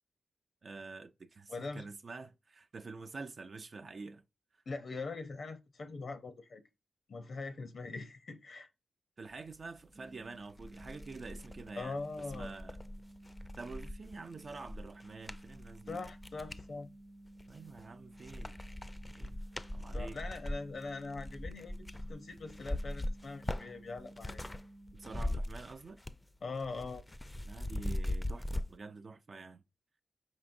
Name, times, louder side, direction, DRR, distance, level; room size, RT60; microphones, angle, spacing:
voice 1, 0.6-4.2 9.2-12.8 13.6-16.0 17.5-18.6 19.1-19.4 19.7-20.2 24.9-26.0 27.5-29.6, right 4 dB, 55° right, 0.3 m, -47 dB
voice 2, 1.5-1.9 4.7-6.6 7.1-8.7 11.8-12.5 15.9-16.9 19.9-24.4 26.4-27.0, left 3 dB, 70° left, 0.6 m, -42 dB
sound 1, 9.9-25.2, right 1 dB, 35° right, 0.7 m, -55 dB
sound 2, 10.0-10.1 10.5-16.7 17.3-17.9 18.2-24.6 24.9-26.3 26.5-28.6, left 1 dB, 20° left, 0.4 m, -40 dB
5.1 x 3.6 x 2.6 m
cardioid pair, 60°, 0 cm